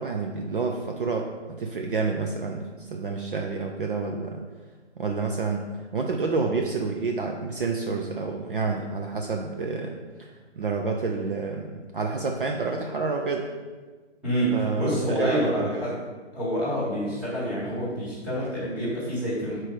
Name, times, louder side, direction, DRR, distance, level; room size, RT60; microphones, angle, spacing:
voice 1, 0.0-4.4 5.0-5.7 5.9-9.9 10.2-10.3 10.6-13.5 14.5-15.8, right 4 dB, 50° right, 2 dB, 0.6 m, -29 dB
voice 2, 14.2-15.9 16.3-19.6, equal, 5° right, -10 dB, 1.5 m, -27 dB
6.3 x 4.5 x 4.8 m, 1.3 s
hypercardioid pair, 160°, 35 cm